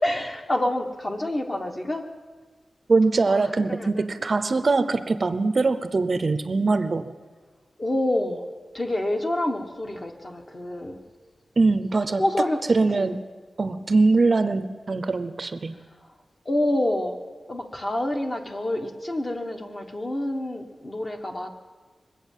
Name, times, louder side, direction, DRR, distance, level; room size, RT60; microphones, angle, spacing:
voice 1, 0.0-2.1 3.3-3.4 3.7-4.3 7.8-8.4 8.7-11.0 12.2-12.6 12.9-13.2 16.4-17.2 17.5-21.5, left 1 dB, 30° left, 3 dB, 1.4 m, -27 dB
voice 2, 2.9-7.2 11.6-12.2 12.7-13.2 13.6-15.8, right 3 dB, 45° right, 12 dB, 0.6 m, -22 dB
22.0 x 8.5 x 7.4 m, 1.4 s
wide cardioid pair, 120°, 0 cm